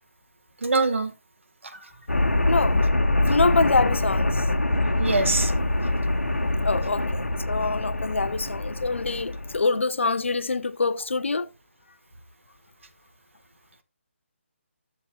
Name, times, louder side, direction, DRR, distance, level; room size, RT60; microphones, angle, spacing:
voice 1, 0.6-1.1 5.0-5.5, right 3 dB, 65° right, 1.4 m, -23 dB
sound 1, 2.1-9.6, left 2 dB, 80° left, 1.2 m, -24 dB
voice 2, 2.5-2.8 3.3-4.5 6.6-11.5, left 3 dB, 65° left, 0.7 m, -25 dB
14.0 x 7.5 x 2.3 m
figure-of-eight pair, 145°, 7 cm